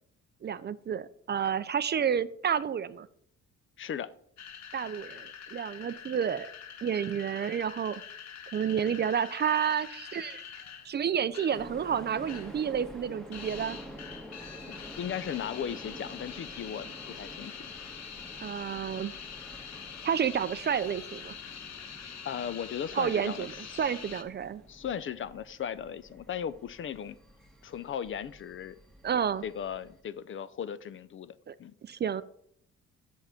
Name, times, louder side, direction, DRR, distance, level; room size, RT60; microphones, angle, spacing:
voice 1, 0.4-3.1 4.7-6.5 6.8-8.0 8.5-13.8 18.4-19.1 20.0-21.3 22.9-24.6 29.0-29.4 31.5-31.6 31.8-32.2, right 8 dB, 35° right, 15 dB, 0.4 m, -30 dB
voice 2, 3.8-4.1 14.7-17.7 22.2-23.8 24.7-27.2 27.6-28.8 29.4-31.7, left 8 dB, 45° left, 16 dB, 0.5 m, -37 dB
sound 1, 4.4-11.7 12.0-12.6 12.9-24.2, left 7 dB, 65° left, 0.9 m, -45 dB
sound 2, 11.5-30.0, equal, ahead, 1.3 m, -49 dB
6.3 x 5.7 x 5.7 m, 0.68 s
cardioid pair, 90°, 30 cm